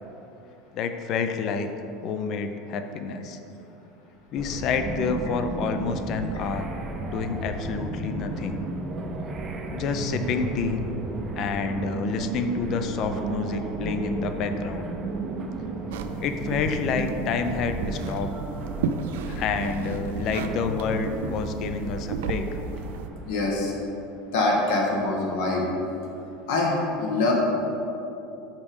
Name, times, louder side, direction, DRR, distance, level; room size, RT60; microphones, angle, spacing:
voice 1, 0.7-1.7 2.0-3.4 4.3-6.7 7.0-8.6 9.7-10.8 11.4-14.9 16.2-18.3 19.2-22.5, left 5 dB, 40° left, 8 dB, 0.5 m, -28 dB
sound 1, 4.4-23.6, right 3 dB, 25° right, 0.5 m, -34 dB
sound 2, 15.9-23.1, right 5 dB, 85° right, 0.4 m, -34 dB
voice 2, 23.3-23.7 24.3-25.6 26.5-27.3, left 2 dB, 75° left, -2 dB, 1.2 m, -24 dB
5.2 x 4.9 x 5.2 m, 2.9 s
supercardioid pair, 150°, 0 cm